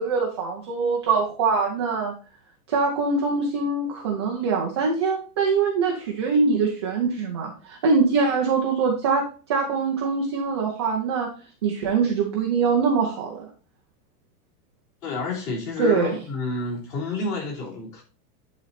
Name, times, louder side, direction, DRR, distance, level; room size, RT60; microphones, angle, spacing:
voice 1, 0.0-2.1 2.7-11.3 11.6-13.5 15.8-16.2, right 4 dB, 20° right, -1 dB, 0.4 m, -23 dB
voice 2, 15.0-18.0, left 3 dB, 30° left, -2 dB, 3.3 m, -30 dB
10.5 x 4.1 x 4.0 m, 0.37 s
supercardioid pair, 175°, 48 cm